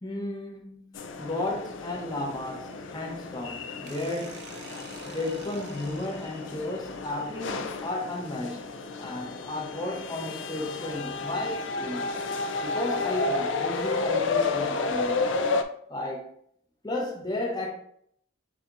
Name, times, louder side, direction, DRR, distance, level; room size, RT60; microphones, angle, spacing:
voice 1, 0.0-4.5 5.0-8.6 9.0-12.1 12.6-15.2 15.9-16.3 16.8-17.7, left 2 dB, 20° left, 0.8 m, -33 dB
sound 1, 1.0-15.6, left 3 dB, 60° left, 0.4 m, -32 dB
sound 2, 3.9-6.8, right 5 dB, 50° right, 0.5 m, -48 dB
7.4 x 2.8 x 2.6 m
head